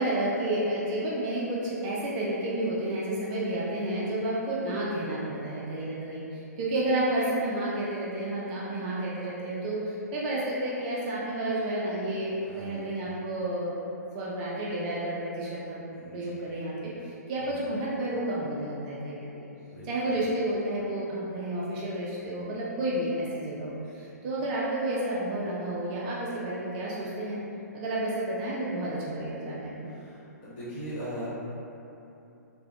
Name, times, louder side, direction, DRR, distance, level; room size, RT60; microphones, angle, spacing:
voice 1, 0.0-13.7 14.1-15.8 16.1-19.5 19.8-27.4 27.7-29.9, right 1 dB, 30° right, -6 dB, 0.3 m, -31 dB
voice 2, 12.4-12.9 15.9-16.5 17.4-17.7 19.4-20.2 29.8-31.3, equal, 40° left, -10 dB, 1.1 m, -41 dB
3.3 x 2.1 x 2.3 m, 2.8 s
figure-of-eight pair, 120°, 9 cm